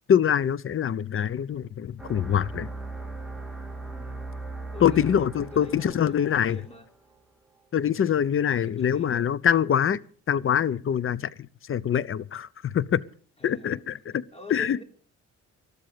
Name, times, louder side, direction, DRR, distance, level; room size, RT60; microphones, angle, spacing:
voice 1, 0.1-2.7 4.8-6.6 7.7-10.0 10.3-13.0 13.4-14.2 14.5-14.8, left 9 dB, 45° left, 0.8 m, -24 dB
sound 1, 2.0-7.2, right 2 dB, ahead, 2.5 m, -39 dB
voice 2, 3.9-4.2 4.7-6.9 8.5-9.3 13.4-13.8 14.3-14.8, left 2 dB, 20° left, 3.5 m, -45 dB
20.5 x 13.0 x 5.2 m
cardioid pair, 90°, 30 cm